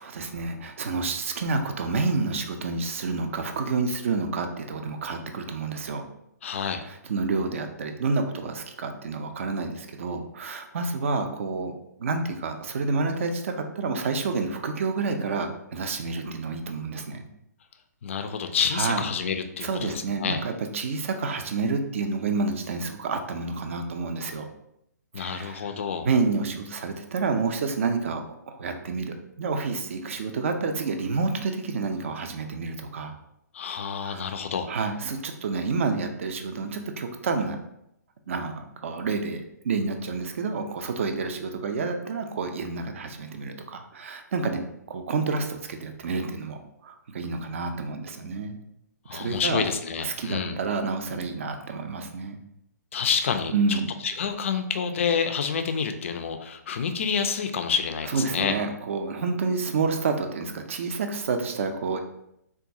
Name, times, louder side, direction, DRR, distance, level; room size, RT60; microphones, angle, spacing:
voice 1, 0.0-6.0 6.9-11.7 12.0-17.3 18.7-19.1 19.6-24.5 25.2-25.7 26.0-33.2 34.0-34.2 34.7-37.6 38.3-48.6 49.1-49.7 50.0-52.4 53.5-53.9 58.1-62.0, right 4 dB, 45° right, 6 dB, 0.4 m, -29 dB
voice 2, 6.4-6.8 18.0-20.4 25.1-26.1 33.5-34.7 49.1-50.6 52.9-58.5, left 6 dB, 45° left, 7 dB, 0.3 m, -28 dB
3.7 x 2.3 x 2.6 m, 0.79 s
figure-of-eight pair, 130°, 10 cm